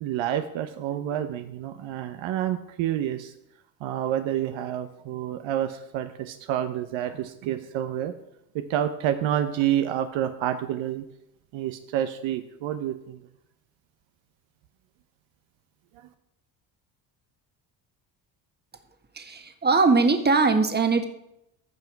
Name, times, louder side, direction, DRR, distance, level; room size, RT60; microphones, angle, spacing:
voice 1, 0.0-3.3 3.8-8.1 8.5-11.0 11.5-13.2 15.9-16.1, right 11 dB, 65° right, 8 dB, 0.9 m, -28 dB
voice 2, 19.1-21.0, right 4 dB, 20° right, 6 dB, 1.5 m, -21 dB
15.0 x 5.6 x 4.7 m, 0.84 s
supercardioid pair, 70°, 50 cm